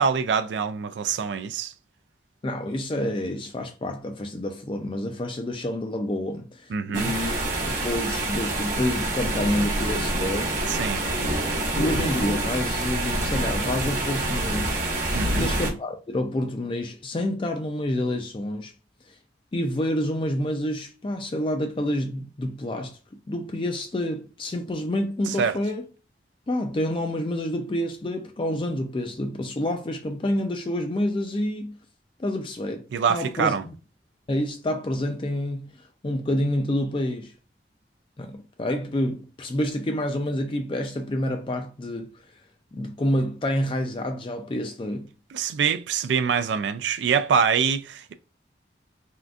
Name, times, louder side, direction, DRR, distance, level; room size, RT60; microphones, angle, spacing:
voice 1, 0.0-1.7 6.7-7.1 10.7-11.0 15.1-15.5 25.4-25.6 32.9-33.6 45.3-48.1, right 6 dB, 80° right, 0.3 m, -24 dB
voice 2, 2.4-10.6 11.7-14.9 15.3-18.7 19.5-23.0 23.3-25.8 26.5-31.8 32.2-33.7 34.3-37.3 38.2-42.1 42.7-45.1, left 1 dB, 30° left, 0.4 m, -28 dB
sound 1, 6.9-15.7, right 1 dB, 45° right, 1.0 m, -26 dB
3.6 x 2.5 x 2.3 m
head